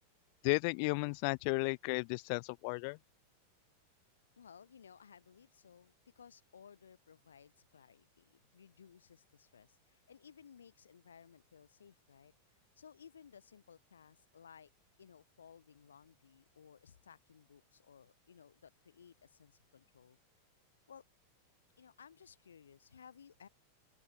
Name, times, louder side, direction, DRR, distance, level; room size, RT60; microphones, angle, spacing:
voice 1, 0.4-3.0, left 35 dB, 45° left, 0.5 m, -34 dB
voice 2, 4.4-14.7 15.0-20.2 20.9-21.0 21.8-23.5, left 7 dB, 70° left, 2.4 m, -59 dB
open air
figure-of-eight pair, 90°, 0 cm